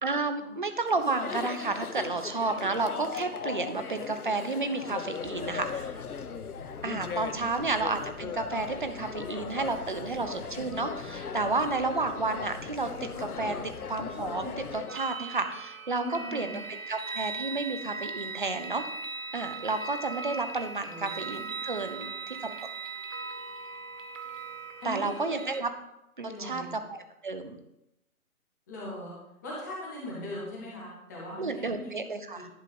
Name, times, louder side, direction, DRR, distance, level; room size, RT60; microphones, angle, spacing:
voice 1, 0.0-6.0 6.8-13.6 13.9-18.8 19.3-22.7 24.8-25.7 26.2-27.6 31.4-32.5, right 3 dB, 35° right, 8 dB, 0.6 m, -31 dB
Chatter, 0.9-15.0, left 6 dB, 75° left, 0.7 m, -38 dB
sound 1, 5.2-14.7, left 3 dB, 55° left, 1.9 m, -48 dB
voice 2, 7.3-7.6 16.0-16.6 20.8-21.5 21.9-22.2 24.8-25.4 26.3-26.7 28.7-29.1 29.4-31.9 32.3-32.5, left 1 dB, 10° left, -5 dB, 1.1 m, -40 dB
sound 2, 14.9-25.6, right 4 dB, 60° right, 1.0 m, -39 dB
11.0 x 4.5 x 5.2 m, 0.88 s
figure-of-eight pair, 150°, 45 cm